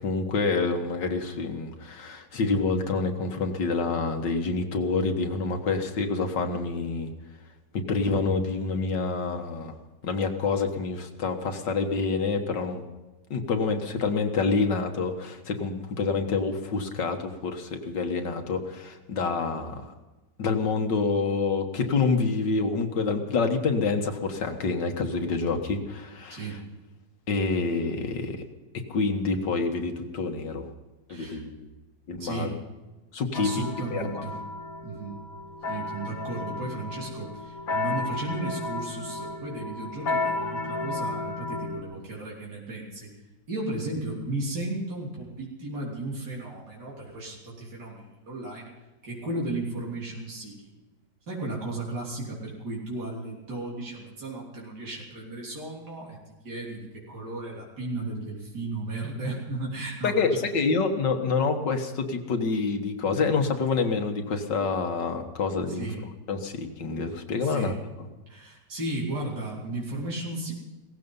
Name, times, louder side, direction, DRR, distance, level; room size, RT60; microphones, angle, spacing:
voice 1, 0.0-7.1 7.7-9.7 10.0-12.8 13.3-19.9 20.4-26.4 27.3-28.4 28.9-30.7 31.1-31.5 32.1-32.5 33.1-33.5 33.9-34.0 60.0-65.9 66.3-67.8, left 4 dB, 85° left, 5 dB, 2.2 m, -27 dB
voice 2, 26.3-26.6 31.1-31.4 32.2-32.6 33.3-34.4 34.8-35.2 35.7-43.1 43.5-48.7 49.0-50.8 51.3-60.4 65.7-66.0 67.4-67.8 68.3-70.5, right 2 dB, 70° right, -4 dB, 4.0 m, -35 dB
sound 1, 33.3-41.8, left 3 dB, 55° left, 2.0 m, -33 dB
17.5 x 15.0 x 5.5 m, 1.1 s
omnidirectional pair, 1.8 m